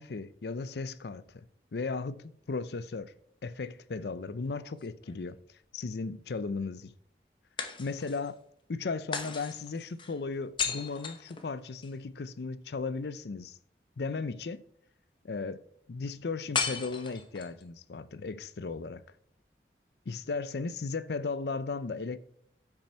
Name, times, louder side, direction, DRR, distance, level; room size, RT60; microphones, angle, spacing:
voice 1, 0.0-1.4 1.7-3.1 3.4-5.4 5.7-6.9 7.8-8.4 8.7-13.6 14.0-14.6 15.2-15.6 15.9-19.0 20.1-22.2, left 4 dB, 70° left, 0.5 m, -36 dB
sound 1, 4.5-5.5 7.6-8.3 9.1-12.0 16.5-17.6, left 6 dB, 25° left, 0.8 m, -36 dB
8.7 x 6.2 x 4.4 m
head